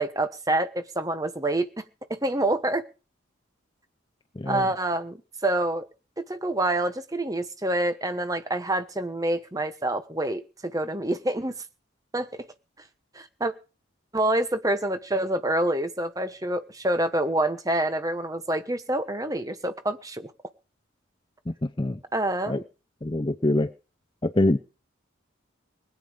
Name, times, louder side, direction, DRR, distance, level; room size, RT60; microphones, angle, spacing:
voice 1, 0.0-1.8 2.1-2.8 4.5-5.8 6.2-11.5 12.1-12.4 13.1-13.5 14.1-20.3 22.1-22.6, right 1 dB, 15° right, 10 dB, 1.2 m, -27 dB
voice 2, 4.4-4.7 21.5-22.0 22.5-22.6 23.0-23.7 24.2-24.6, left 1 dB, 25° left, 10 dB, 0.6 m, -24 dB
20.5 x 9.4 x 5.2 m, 0.35 s
head